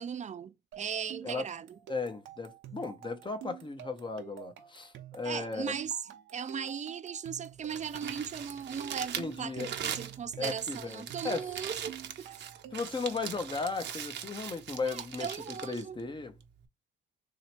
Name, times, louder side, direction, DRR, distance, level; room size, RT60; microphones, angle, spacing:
voice 1, 0.0-1.8 5.2-6.0 6.3-12.4 14.9-16.0, right 7 dB, 35° right, 0.5 m, -38 dB
sound 1, 0.7-13.0, right 12 dB, 90° right, 0.9 m, -49 dB
voice 2, 1.9-5.7 9.2-9.7 10.4-11.5 12.7-15.4 15.6-16.3, left 4 dB, 25° left, 0.9 m, -36 dB
Crumpling crinkling, 7.5-16.7, right 9 dB, 65° right, 0.8 m, -41 dB
3.2 x 2.8 x 4.3 m
cardioid pair, 90°, 20 cm